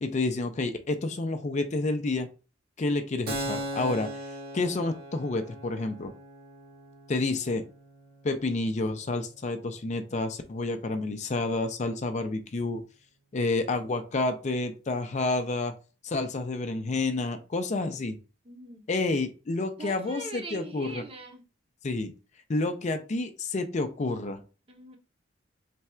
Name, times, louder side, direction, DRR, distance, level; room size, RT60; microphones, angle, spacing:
voice 1, 0.0-2.3 2.8-4.1 4.5-6.1 7.1-7.6 8.2-12.8 13.3-15.7 16.0-18.2 18.9-21.0 21.8-22.1 22.5-24.4, left 2 dB, 40° left, 8 dB, 0.4 m, -29 dB
Keyboard (musical), 3.3-10.6, right 1 dB, 55° right, 1.1 m, -40 dB
voice 2, 18.4-18.8 19.8-21.4 24.7-25.0, right 1 dB, 30° right, 4 dB, 0.8 m, -41 dB
3.3 x 2.3 x 4.2 m, 0.33 s
head